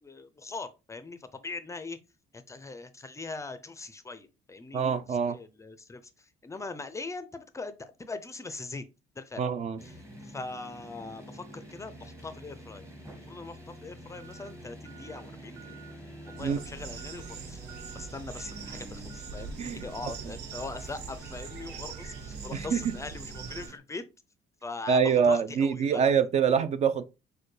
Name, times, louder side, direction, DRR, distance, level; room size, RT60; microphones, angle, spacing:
voice 1, 0.0-2.0 2.3-8.8 9.2-9.4 9.8-9.9 10.2-12.9 13.3-15.8 16.3-17.6 17.9-24.1 24.6-26.0, left 3 dB, 20° left, 0.4 m, -41 dB
voice 2, 4.7-5.4 9.4-9.8 16.4-16.6 19.6-19.8 22.5-22.8 24.9-27.0, right 6 dB, 40° right, 0.4 m, -25 dB
Pelleteuse(st), 9.8-23.8, right 1 dB, 15° right, 1.0 m, -46 dB
sound 1, 16.4-23.7, right 6 dB, 80° right, 0.8 m, -43 dB
6.4 x 2.2 x 3.2 m
cardioid pair, 110°, 17 cm